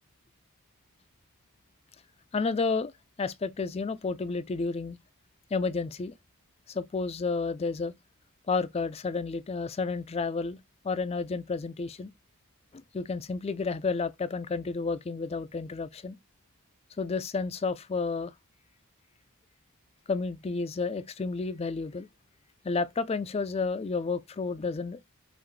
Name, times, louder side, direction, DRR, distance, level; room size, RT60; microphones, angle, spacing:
voice 1, 2.3-2.9 3.2-5.0 5.5-6.1 6.7-7.9 8.5-10.6 10.8-12.1 12.7-16.2 17.0-18.3 20.1-22.1 22.6-25.0, left 4 dB, 25° left, 0.4 m, -31 dB
5.8 x 2.5 x 3.2 m
head